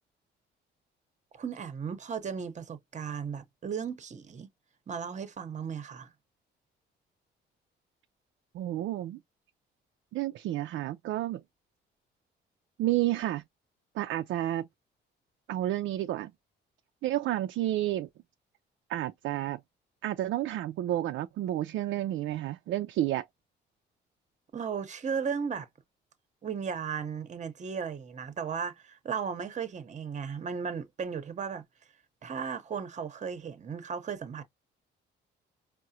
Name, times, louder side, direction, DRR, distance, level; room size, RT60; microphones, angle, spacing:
voice 1, 1.3-4.5 4.9-6.1 24.5-25.7 26.4-31.6 32.2-34.4, right 6 dB, 35° right, 0.8 m, -35 dB
voice 2, 8.5-9.2 10.1-11.4 12.8-13.4 14.0-14.7 15.5-16.3 17.0-18.1 18.9-19.6 20.0-23.2, right 14 dB, 75° right, 0.4 m, -30 dB
4.7 x 2.1 x 2.7 m
cardioid pair, 90°, 20 cm